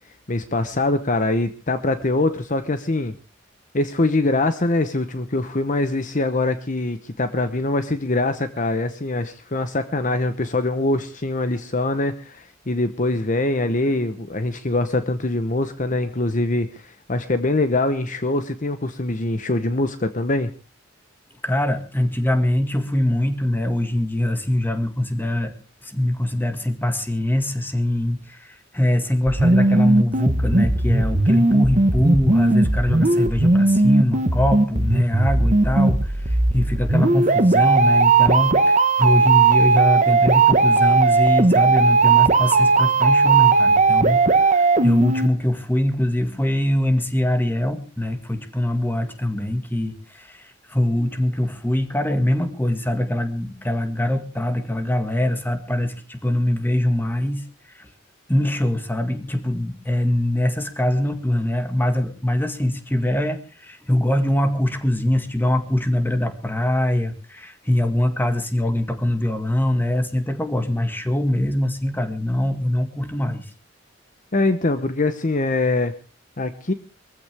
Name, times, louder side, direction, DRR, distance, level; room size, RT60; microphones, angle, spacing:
voice 1, 0.3-3.1 3.7-20.5 74.3-75.9 76.4-76.7, left 2 dB, 40° left, 10 dB, 1.0 m, -23 dB
voice 2, 21.4-25.5 25.8-57.9 58.3-73.5, left 1 dB, 10° left, 7 dB, 2.0 m, -23 dB
sound 1, 29.3-45.3, right 3 dB, 40° right, 1.3 m, -17 dB
22.5 x 15.0 x 3.5 m, 0.35 s
head